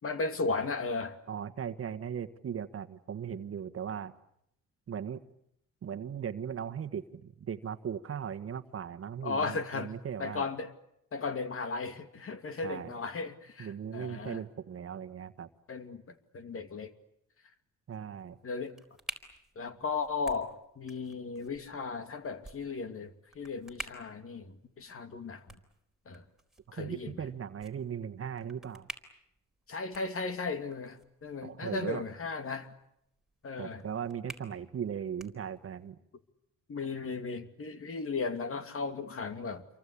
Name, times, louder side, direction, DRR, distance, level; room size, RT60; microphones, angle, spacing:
voice 1, 0.0-1.2 9.2-9.9 10.2-10.7 11.1-14.4 15.7-16.9 18.4-18.7 19.6-25.6 26.1-26.2 26.7-27.1 29.7-32.7 33.4-33.8 36.7-39.6, left 4 dB, 45° left, 8 dB, 2.6 m, -36 dB
voice 2, 1.3-4.1 4.9-5.2 5.8-10.5 12.6-12.9 13.6-15.5 17.9-18.4 26.8-28.9 31.4-32.0 33.6-36.0, right 8 dB, 50° right, 9 dB, 1.5 m, -38 dB
sound 1, 18.2-35.9, right 1 dB, ahead, 4.2 m, -51 dB
28.0 x 23.5 x 8.5 m, 0.77 s
cardioid pair, 90°, 30 cm